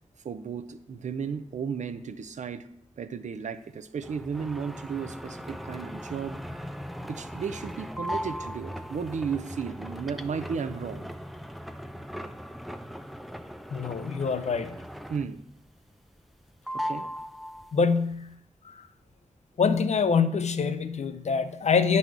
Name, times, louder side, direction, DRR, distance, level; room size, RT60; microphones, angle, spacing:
voice 1, 0.2-2.7 3.0-6.6 7.1-11.1 15.1-15.4 16.7-17.1, right 6 dB, 85° right, 11 dB, 0.5 m, -34 dB
sound 1, 4.0-15.5 15.8-16.4 16.7-18.0, equal, ahead, 0.3 m, -38 dB
voice 2, 13.7-14.7 17.7-18.3 19.6-22.0, left 5 dB, 70° left, 11 dB, 0.5 m, -25 dB
9.1 x 4.1 x 4.6 m, 0.74 s
wide cardioid pair, 105°, 12 cm